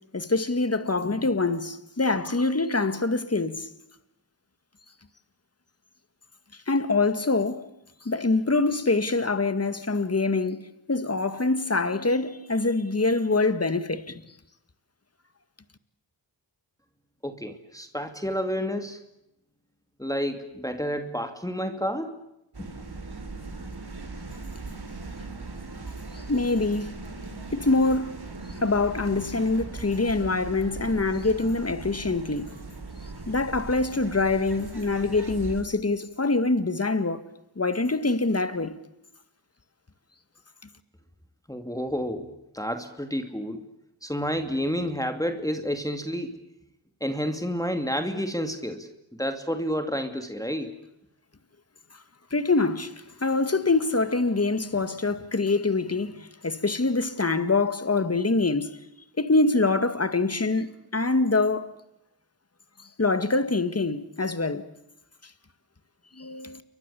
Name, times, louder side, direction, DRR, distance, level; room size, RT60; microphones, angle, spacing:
voice 1, 0.1-3.7 6.7-7.7 8.0-14.2 26.3-27.0 27.5-28.1 28.6-32.5 33.3-37.2 37.6-38.8 52.3-58.7 59.2-61.7 63.0-64.7 66.2-66.6, left 3 dB, 30° left, 2.0 m, -25 dB
voice 2, 17.2-19.0 20.0-22.2 22.6-22.7 41.5-43.6 44.0-46.4 47.0-48.9 49.2-50.8, equal, 5° left, 2.6 m, -30 dB
sound 1, 22.5-35.6, right 3 dB, 50° right, 4.5 m, -39 dB
29.5 x 23.5 x 7.1 m
cardioid pair, 60°, 49 cm